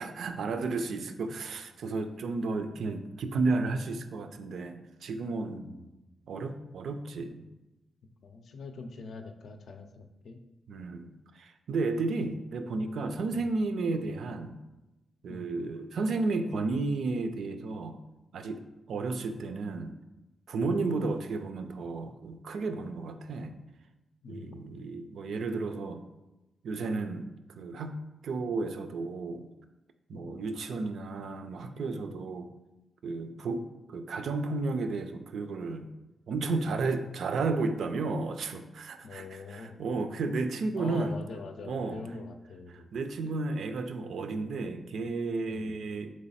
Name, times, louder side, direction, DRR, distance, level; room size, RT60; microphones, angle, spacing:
voice 1, 0.0-5.7 6.3-7.5 10.7-14.6 15.2-18.0 18.3-18.6 18.9-19.9 20.5-23.5 24.3-26.0 26.6-27.3 27.6-28.0 28.2-29.5 30.1-32.5 33.0-35.9 36.3-41.2 41.6-42.0 42.7-46.1, right 3 dB, 75° right, 8 dB, 0.4 m, -33 dB
voice 2, 5.6-6.0 8.2-10.4 13.3-13.6 15.3-15.5 20.6-20.7 24.2-25.0 30.1-30.4 39.0-39.8 40.8-42.9 45.5-45.7, left 4 dB, 70° left, 6 dB, 0.5 m, -44 dB
3.8 x 3.1 x 4.1 m, 1.0 s
cardioid pair, 95°, 0 cm